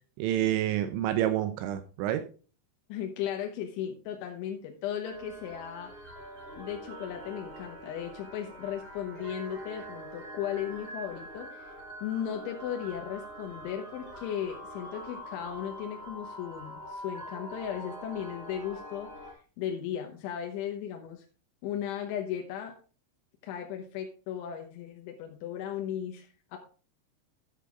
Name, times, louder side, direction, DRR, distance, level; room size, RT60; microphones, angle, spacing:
voice 1, 0.2-2.2, right 12 dB, 85° right, 9 dB, 3.0 m, -28 dB
voice 2, 2.9-5.9 6.6-11.8 12.0-21.3 21.6-22.7 23.4-26.6, left 9 dB, 90° left, 3 dB, 3.5 m, -36 dB
sound 1, 5.0-19.3, equal, 30° right, 3.0 m, -44 dB
11.0 x 7.3 x 3.6 m, 0.38 s
omnidirectional pair, 5.3 m